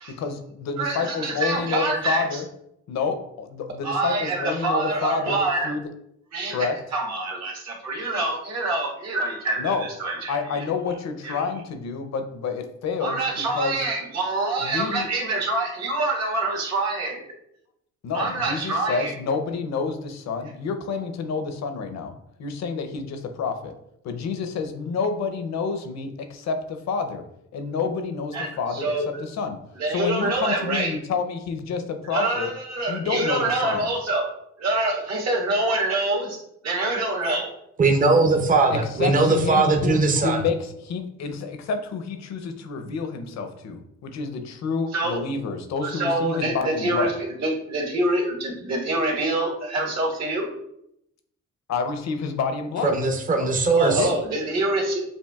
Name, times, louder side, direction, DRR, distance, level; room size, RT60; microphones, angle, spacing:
voice 1, 0.2-2.5 2.9-5.9 6.5-6.7 9.6-9.9 10.3-13.8 14.6-15.1 18.0-23.7 24.0-27.2 27.5-29.6 29.9-32.5 32.9-33.9 38.7-47.1 51.7-52.9 53.4-53.5 53.8-54.2, left 5 dB, 60° left, 7 dB, 0.7 m, -29 dB
voice 2, 0.8-2.4 3.8-5.7 6.3-6.7 6.9-10.6 11.2-11.3 13.0-17.2 18.1-19.2 28.3-29.1 29.8-30.9 32.0-34.3 34.6-36.4 36.6-37.5 44.9-45.2 45.8-50.5 53.7-55.0, right 2 dB, 60° right, -1 dB, 1.6 m, -26 dB
voice 3, 37.8-40.5 52.8-54.1, right 3 dB, 25° right, 4 dB, 0.7 m, -20 dB
7.2 x 2.6 x 2.3 m, 0.77 s
cardioid pair, 90°, 30 cm